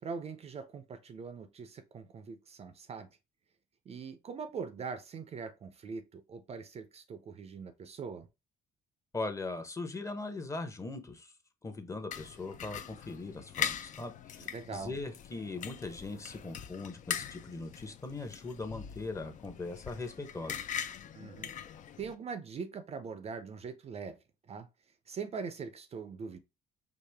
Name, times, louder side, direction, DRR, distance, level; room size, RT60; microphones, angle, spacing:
voice 1, 0.0-3.1 3.9-8.3 14.4-14.9 21.1-21.5 22.0-24.2 24.5-24.7 25.1-26.4, right 5 dB, 40° right, 0.5 m, -42 dB
voice 2, 9.1-11.3 11.6-12.8 13.1-20.6, left 3 dB, 20° left, 0.8 m, -40 dB
sound 1, 12.1-22.1, left 9 dB, 50° left, 0.5 m, -41 dB
4.8 x 2.5 x 3.4 m
cardioid pair, 110°, 17 cm